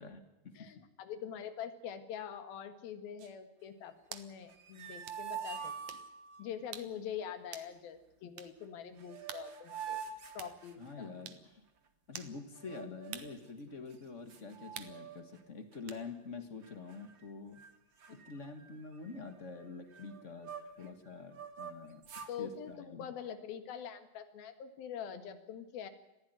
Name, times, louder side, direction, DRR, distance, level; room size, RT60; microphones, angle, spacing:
voice 1, 0.0-0.7 10.8-11.6 12.1-17.6 18.1-20.5 20.8-22.0 22.4-23.1, left 4 dB, 55° left, 7 dB, 0.8 m, -46 dB
voice 2, 0.6-5.7 6.4-10.0 10.4-11.1 18.1-18.2 22.3-25.9, left 8 dB, 80° left, 9 dB, 3.5 m, -44 dB
sound 1, 3.2-3.4 4.1-4.3 5.1-5.2 5.9-6.1 6.7-6.9 7.5-7.7 8.4-8.5 9.3-9.5 10.4-10.6 11.3-11.4 12.2-12.4 13.1-13.4 14.8-15.0 15.9-16.0, right 9 dB, 60° right, 2.4 m, -46 dB
sound 2, 4.4-6.5 8.6-8.7 9.0-11.2 12.6-13.4 13.9-14.0 14.3-15.4 15.7-16.0 16.6-17.3 17.6-17.7 18.0-20.9 21.3-22.4, right 7 dB, 45° right, 1.7 m, -46 dB
21.0 x 15.0 x 9.3 m, 0.99 s
omnidirectional pair, 4.2 m